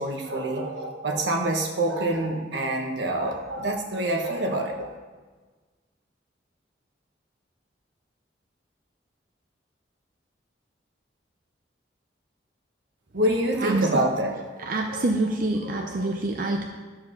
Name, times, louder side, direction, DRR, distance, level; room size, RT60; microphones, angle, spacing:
voice 1, 0.0-4.9 13.1-15.0 15.6-16.1 16.4-16.6, right 1 dB, 75° right, 2 dB, 1.4 m, -27 dB
voice 2, 13.6-14.1 14.6-16.6, right 2 dB, 50° right, 2 dB, 0.6 m, -27 dB
12.0 x 4.7 x 6.6 m, 1.4 s
head